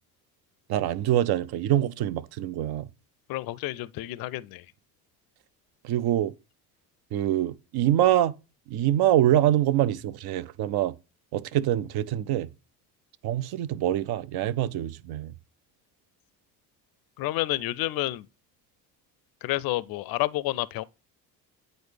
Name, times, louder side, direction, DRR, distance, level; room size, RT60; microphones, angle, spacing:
voice 1, 0.7-2.9 5.8-6.3 7.1-8.3 8.7-10.9 11.3-12.5 13.2-15.3, right 12 dB, 55° right, 0.5 m, -25 dB
voice 2, 3.3-4.6 17.2-18.3 19.4-20.8, left 17 dB, 50° left, 0.5 m, -29 dB
8.8 x 3.9 x 3.3 m
hypercardioid pair, 55°, 46 cm